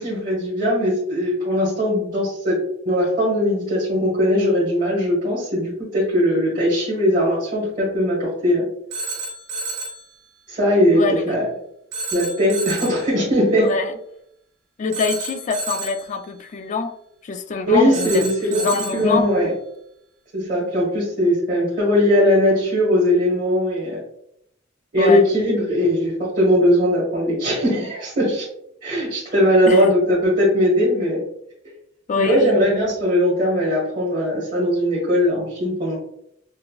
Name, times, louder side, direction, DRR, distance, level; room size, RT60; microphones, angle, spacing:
voice 1, 0.0-2.6 2.8-8.7 10.5-11.4 12.1-13.7 17.6-18.6 18.9-19.5 20.3-24.0 24.9-28.5 28.8-31.2 32.1-35.9, equal, 45° right, -7 dB, 1.3 m, -19 dB
Telephone, 8.9-10.1 11.9-13.1 14.9-16.1 17.9-19.1, right 2 dB, 60° right, 0.8 m, -30 dB
voice 2, 10.9-11.4 13.6-13.9 14.8-17.0 17.2-19.3 25.0-25.2 29.7-29.9 32.1-32.6, left 4 dB, 40° left, 8 dB, 0.3 m, -24 dB
5.4 x 2.0 x 2.3 m, 0.74 s
head